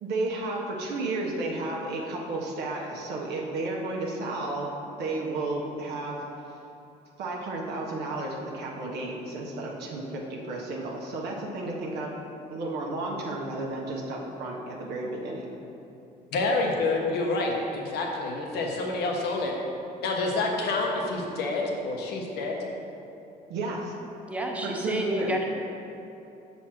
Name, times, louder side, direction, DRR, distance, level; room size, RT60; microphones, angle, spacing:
voice 1, 0.0-6.2 7.2-12.1 12.5-15.6 23.5-23.9 24.6-25.3, right 2 dB, 75° right, -2 dB, 1.0 m, -32 dB
voice 2, 16.3-19.5 20.0-22.6, left 3 dB, 75° left, 0 dB, 1.1 m, -28 dB
voice 3, 24.3-25.4, right 1 dB, 10° right, 0 dB, 0.8 m, -30 dB
6.1 x 4.1 x 5.8 m, 2.8 s
cardioid pair, 110°, 17 cm